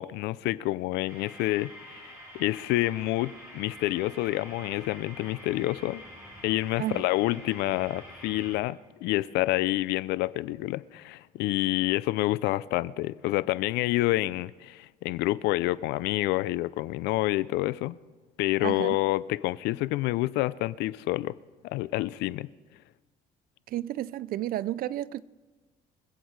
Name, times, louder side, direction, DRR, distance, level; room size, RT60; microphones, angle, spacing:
voice 1, 0.0-6.0 6.4-18.0 18.4-21.4 21.6-22.5, left 17 dB, 90° left, 0.4 m, -28 dB
sound 1, 1.1-8.6, equal, 15° right, 6.1 m, -47 dB
voice 2, 18.6-19.0 23.7-25.2, right 13 dB, 60° right, 0.5 m, -32 dB
24.5 x 8.3 x 4.7 m
cardioid pair, 110°, 17 cm